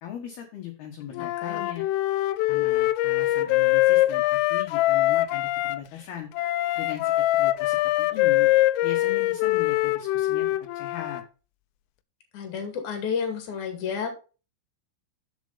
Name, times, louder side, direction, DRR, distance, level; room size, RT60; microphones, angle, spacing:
voice 1, 0.0-1.8 2.5-6.3 6.8-8.5 8.8-10.5 10.7-11.2, left 9 dB, 65° left, 2 dB, 2.9 m, -39 dB
Wind instrument woodwind instrument, 1.1-5.8 6.4-11.2, left 16 dB, 85° left, 3.2 m, -23 dB
voice 2, 1.2-1.6 12.3-14.1, left 6 dB, 45° left, 5 dB, 3.2 m, -31 dB
7.7 x 7.2 x 5.7 m, 0.34 s
omnidirectional pair, 5.8 m